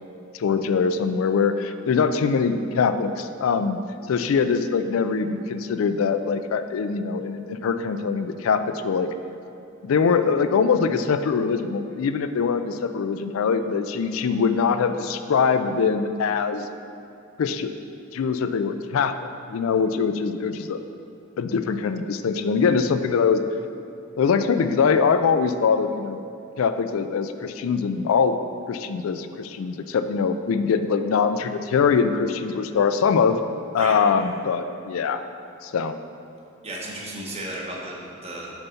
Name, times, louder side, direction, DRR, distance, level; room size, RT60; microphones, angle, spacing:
voice 1, 0.3-3.8 4.1-9.1 9.8-16.7 17.4-17.7 18.1-20.8 21.4-23.4 24.2-26.2 26.6-28.4 28.7-33.4 33.7-35.2 35.6-35.9, left 5 dB, 80° left, 10 dB, 0.4 m, -23 dB
voice 2, 36.6-38.5, right 1 dB, 30° right, -3 dB, 1.1 m, -34 dB
7.1 x 4.0 x 5.6 m, 2.7 s
head